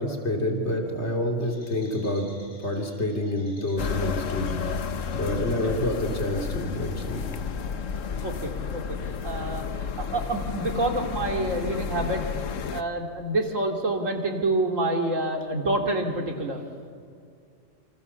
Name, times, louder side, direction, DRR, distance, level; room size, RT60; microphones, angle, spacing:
voice 1, 0.0-7.3, left 1 dB, 60° left, 3 dB, 3.4 m, -28 dB
sound 1, 3.8-12.8, left 6 dB, 85° left, 1.4 m, -32 dB
voice 2, 8.0-12.2 12.7-16.6, right 2 dB, 85° right, 3 dB, 3.2 m, -28 dB
27.5 x 27.5 x 7.2 m, 2.3 s
omnidirectional pair, 1.3 m